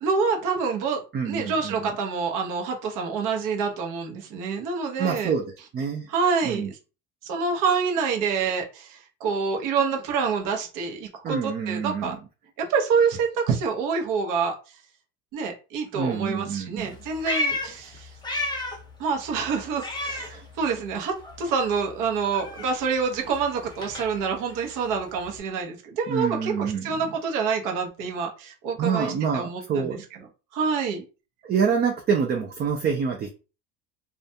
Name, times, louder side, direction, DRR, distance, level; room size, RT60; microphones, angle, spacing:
voice 1, 0.0-5.3 6.1-6.8 7.2-12.1 12.6-14.5 15.3-18.1 19.0-30.0 30.5-31.0, right 5 dB, 60° right, 0.9 m, -27 dB
voice 2, 1.1-1.9 5.0-6.1 6.4-6.7 11.2-12.2 15.9-17.0 20.3-20.5 26.1-27.0 28.8-30.0 31.4-33.3, right 6 dB, 30° right, 0.4 m, -27 dB
Meow, 16.8-18.9 19.2-21.0 21.2-25.4, left 2 dB, 10° left, 0.6 m, -33 dB
2.4 x 2.2 x 2.7 m
supercardioid pair, 100°, 35 cm